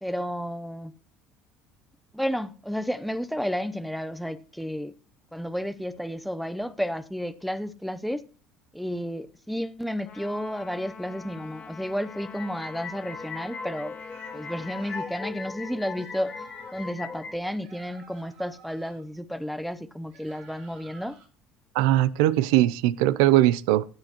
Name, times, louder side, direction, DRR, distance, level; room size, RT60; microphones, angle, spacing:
voice 1, 0.0-0.9 2.1-4.9 5.3-8.2 8.7-13.9 14.3-16.3 16.7-21.2, equal, ahead, 0.6 m, -32 dB
Trumpet, 10.0-15.1, left 6 dB, 50° left, 1.6 m, -45 dB
sound 1, 12.1-17.4, left 5 dB, 30° left, 1.0 m, -39 dB
sound 2, 13.9-15.2 15.8-16.9 17.6-19.0 20.1-21.3, right 5 dB, 70° right, 4.0 m, -53 dB
voice 2, 21.7-23.9, right 15 dB, 90° right, 0.5 m, -20 dB
15.5 x 7.7 x 2.9 m
cardioid pair, 120°, 2 cm